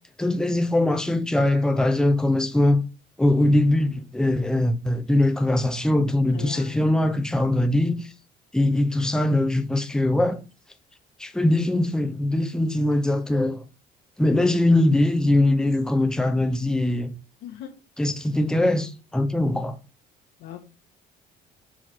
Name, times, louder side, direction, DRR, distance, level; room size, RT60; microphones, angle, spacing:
voice 1, 0.2-2.8 3.2-8.0 8.5-10.4 11.2-13.6 14.2-17.1 18.0-19.7, left 1 dB, 5° left, 0.8 m, -21 dB
voice 2, 6.3-6.9 17.4-17.7 20.4-20.6, left 11 dB, 85° left, 1.6 m, -39 dB
6.8 x 4.0 x 4.6 m
cardioid pair, 110°, 17 cm